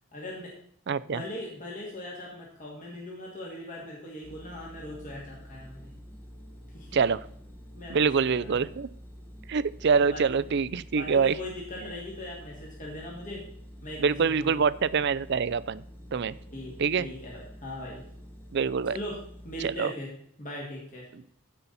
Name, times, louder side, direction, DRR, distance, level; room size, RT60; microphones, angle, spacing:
voice 1, 0.1-0.5 1.0-5.9 6.7-7.0 7.7-8.7 10.0-10.2 11.0-13.4 13.8-14.5 16.5-18.0 18.9-19.2 19.4-20.1 20.4-21.1, left 1 dB, 35° left, -3 dB, 2.2 m, -40 dB
voice 2, 0.9-1.2 6.9-7.2 7.9-8.9 9.5-11.3 14.0-15.8 16.1-16.4 16.8-17.1 18.5-19.0 19.6-19.9, right 5 dB, 50° right, 17 dB, 0.4 m, -25 dB
sound 1, 4.2-19.7, equal, 10° left, 1.0 m, -47 dB
15.5 x 5.7 x 4.1 m, 0.68 s
head